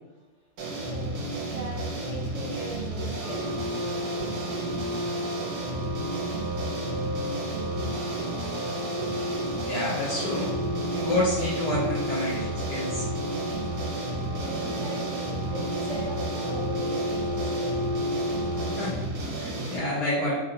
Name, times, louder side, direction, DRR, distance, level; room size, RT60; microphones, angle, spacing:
sound 1, 0.6-19.8, right 1 dB, 65° right, 1.0 m, -33 dB
voice 1, 0.8-4.2 14.0-17.8, right 1 dB, 5° right, -9 dB, 1.0 m, -40 dB
sound 2, 3.2-18.9, equal, 85° right, 0.4 m, -33 dB
voice 2, 9.7-10.5 10.9-13.1 18.7-19.0 19.4-20.4, left 1 dB, 70° left, -7 dB, 1.0 m, -29 dB
3.2 x 2.7 x 2.7 m, 1.1 s
omnidirectional pair, 2.3 m